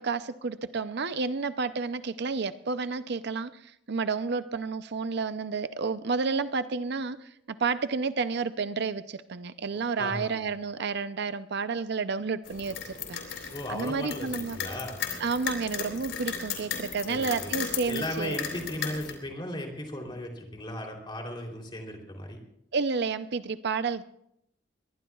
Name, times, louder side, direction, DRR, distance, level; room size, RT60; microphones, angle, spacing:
voice 1, 0.0-14.6 15.2-18.4 22.7-24.0, right 4 dB, 60° right, 12 dB, 0.6 m, -31 dB
voice 2, 10.0-10.4 13.5-15.0 17.1-17.5 17.9-22.4, left 1 dB, 25° left, 1 dB, 3.3 m, -36 dB
sound 1, 12.5-19.1, left 7 dB, 80° left, 3.7 m, -36 dB
23.0 x 19.5 x 2.4 m, 0.75 s
head